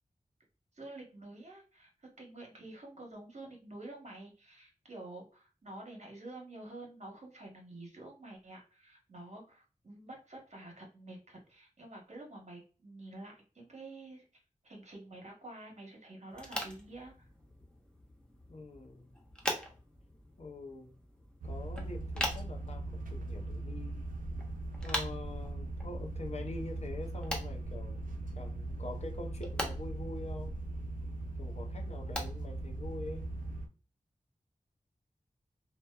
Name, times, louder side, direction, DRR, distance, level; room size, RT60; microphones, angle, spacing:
voice 1, 0.7-14.2 14.6-17.3, right 2 dB, 50° right, 0 dB, 1.0 m, -49 dB
sound 1, 16.3-33.6, equal, 5° left, 0.6 m, -44 dB
voice 2, 18.5-19.1 20.4-20.9 21.4-24.1 24.8-28.0 28.4-30.6 31.4-33.3, left 2 dB, 50° left, 2 dB, 0.5 m, -44 dB
sound 2, 21.4-33.7, right 2 dB, 70° right, 0.4 m, -39 dB
2.8 x 2.1 x 2.2 m, 0.36 s
wide cardioid pair, 70°, 14 cm